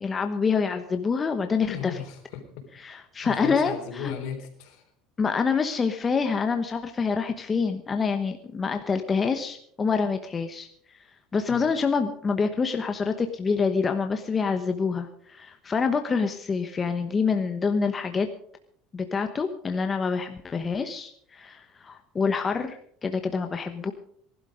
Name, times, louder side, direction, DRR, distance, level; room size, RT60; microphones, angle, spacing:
voice 1, 0.0-2.0 2.7-4.1 5.2-10.7 11.3-18.3 18.9-23.9, left 5 dB, 25° left, 7 dB, 1.1 m, -26 dB
voice 2, 1.7-2.4 3.2-4.8 11.5-11.7, left 7 dB, 70° left, 4 dB, 3.7 m, -35 dB
19.0 x 12.0 x 5.1 m, 0.63 s
cardioid pair, 130°, 0 cm